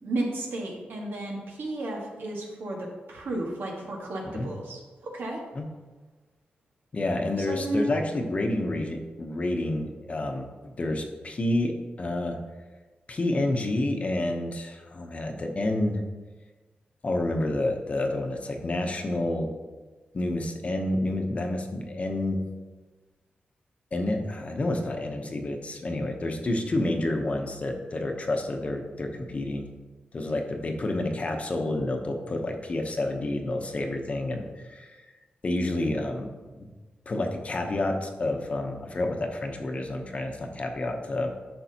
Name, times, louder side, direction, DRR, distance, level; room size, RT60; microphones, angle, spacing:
voice 1, 0.0-4.8 5.1-5.4 7.5-7.9, right 1 dB, 85° right, -1 dB, 1.6 m, -32 dB
voice 2, 6.9-12.4 13.1-16.0 17.0-19.5 20.1-22.4 23.9-29.7 30.1-34.9 35.4-36.3 36.6-36.7 37.1-41.3, left 1 dB, 40° left, 4 dB, 0.9 m, -29 dB
10.0 x 6.1 x 2.9 m, 1.3 s
wide cardioid pair, 110°, 3 cm